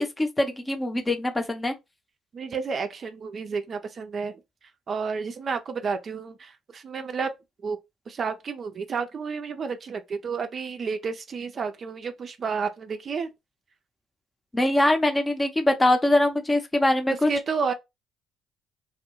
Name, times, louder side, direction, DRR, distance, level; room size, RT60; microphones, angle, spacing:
voice 1, 0.0-1.7 14.5-17.3, left 1 dB, 20° left, 0.7 m, -23 dB
voice 2, 2.3-4.4 4.9-7.3 7.6-7.8 8.1-13.3 17.2-17.7, right 5 dB, 50° right, 0.4 m, -31 dB
2.2 x 2.1 x 2.9 m
hypercardioid pair, 50°, 0 cm